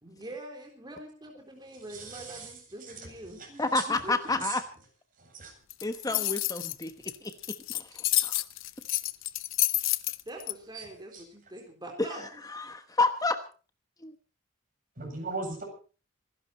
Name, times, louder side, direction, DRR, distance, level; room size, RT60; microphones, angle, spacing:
voice 1, 0.0-4.4 6.1-6.3 10.3-12.4, right 1 dB, 20° right, 1 dB, 3.7 m, -44 dB
voice 2, 1.9-2.5 3.4-3.5 3.8-3.9 4.4-4.5 5.2-5.5 10.7-10.8 11.1-11.2 15.0-15.6, right 4 dB, 45° right, 2 dB, 8.0 m, -37 dB
voice 3, 3.6-4.6 5.8-6.9 7.2-8.3 12.5-13.4 14.0-14.1, left 3 dB, 20° left, 9 dB, 1.1 m, -30 dB
sound 1, 5.7-10.5, left 16 dB, 80° left, 0.9 m, -29 dB
26.5 x 12.0 x 4.3 m, 0.37 s
head